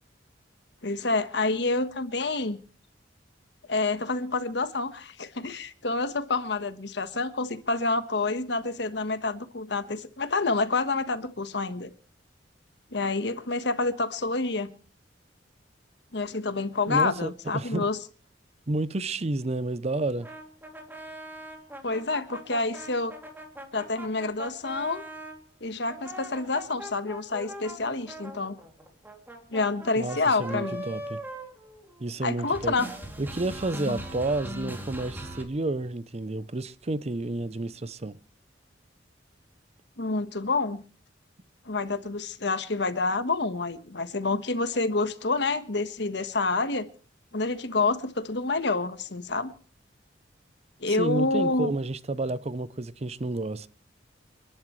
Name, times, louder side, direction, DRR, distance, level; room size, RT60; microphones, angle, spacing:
voice 1, 0.8-2.6 3.7-11.9 12.9-14.7 16.1-18.0 21.8-23.1 23.7-25.0 25.6-28.6 29.5-30.8 32.2-32.9 40.0-40.8 41.7-46.9 47.3-49.5 50.8-51.7, left 3 dB, 65° left, 1.3 m, -28 dB
voice 2, 16.9-17.9 18.7-20.3 30.0-31.2 32.0-32.7 33.2-38.2 50.9-53.7, right 2 dB, 35° right, 0.6 m, -30 dB
sound 1, 20.2-25.4 25.9-32.2 32.4-35.4, right 1 dB, 10° right, 2.7 m, -40 dB
29.5 x 11.5 x 3.2 m
head